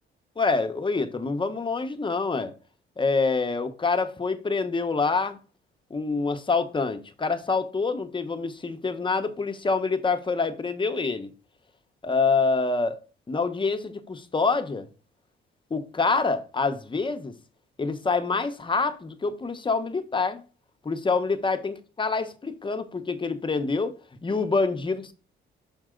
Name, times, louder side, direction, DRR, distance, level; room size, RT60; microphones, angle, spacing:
voice 1, 0.4-2.5 3.0-5.4 5.9-11.3 12.0-13.0 13.3-14.9 15.7-17.3 17.8-20.4 20.8-25.1, left 4 dB, 25° left, 1.0 m, -26 dB
6.2 x 5.4 x 3.8 m
cardioid pair, 90°, 20 cm